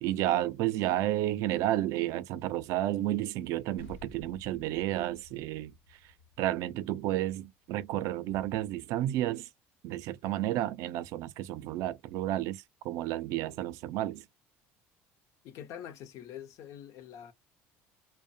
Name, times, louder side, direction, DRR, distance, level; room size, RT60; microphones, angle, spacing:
voice 1, 0.0-5.7 6.4-9.5 9.8-14.2, right 14 dB, 70° right, 0.4 m, -31 dB
sound 1, 3.8-8.6, left 2 dB, 90° left, 1.0 m, -54 dB
voice 2, 15.4-17.3, left 10 dB, 65° left, 0.6 m, -45 dB
2.4 x 2.1 x 2.6 m
supercardioid pair, 105°, 6 cm